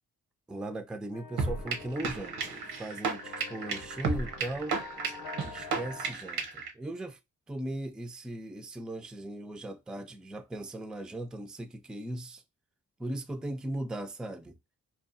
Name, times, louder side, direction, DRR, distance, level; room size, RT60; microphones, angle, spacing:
voice 1, 0.5-4.8 5.4-7.2 7.5-12.4 13.0-14.6, right 1 dB, ahead, 0.3 m, -38 dB
sound 1, 1.1-6.1, left 5 dB, 85° left, 0.7 m, -47 dB
sound 2, 1.4-6.7, right 4 dB, 80° right, 0.7 m, -33 dB
2.6 x 2.3 x 2.6 m
cardioid pair, 55°, 36 cm